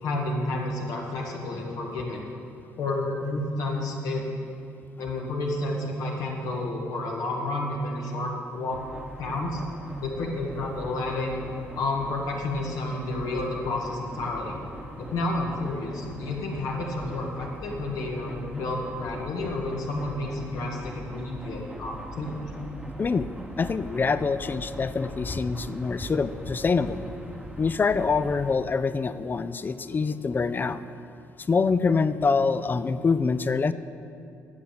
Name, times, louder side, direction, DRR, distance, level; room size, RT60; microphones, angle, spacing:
voice 1, 0.0-2.3 2.8-4.2 5.0-8.8 9.2-9.6 10.0-11.4 11.7-14.6 15.0-22.5, left 2 dB, 75° left, -1 dB, 2.0 m, -30 dB
sound 1, 8.7-28.6, right 1 dB, 10° right, 1.0 m, -42 dB
voice 2, 23.6-27.0 27.6-30.8 31.5-33.7, left 4 dB, 30° left, 14 dB, 0.5 m, -25 dB
9.6 x 7.1 x 7.9 m, 2.5 s
cardioid pair, 80°, 6 cm